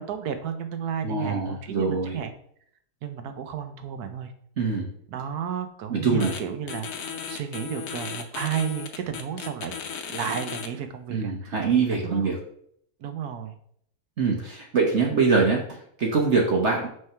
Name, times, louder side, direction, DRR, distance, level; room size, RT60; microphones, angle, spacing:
voice 1, 0.0-2.3 3.0-4.3 5.1-9.7 10.1-11.6 12.0-12.4 13.0-13.6, right 8 dB, 85° right, 8 dB, 1.3 m, -33 dB
voice 2, 1.0-2.2 4.6-4.9 5.9-6.3 11.1-12.3 14.2-16.9, right 4 dB, 50° right, 0 dB, 1.3 m, -24 dB
sound 1, 6.2-6.4 6.7-10.7, left 6 dB, 65° left, 1.2 m, -35 dB
6.4 x 3.5 x 5.6 m, 0.65 s
omnidirectional pair, 1.6 m